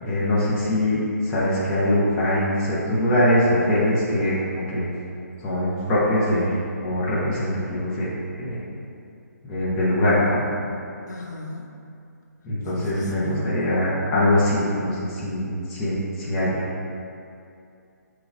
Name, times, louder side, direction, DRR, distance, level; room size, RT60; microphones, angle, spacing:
voice 1, 0.0-4.9 5.4-8.1 8.4-8.6 9.4-10.4 12.4-16.7, left 1 dB, 5° left, -9 dB, 0.3 m, -22 dB
voice 2, 11.1-11.6 12.7-13.5, left 3 dB, 85° left, -1 dB, 0.6 m, -35 dB
7.0 x 3.0 x 2.4 m, 2.5 s
hypercardioid pair, 170°, 9 cm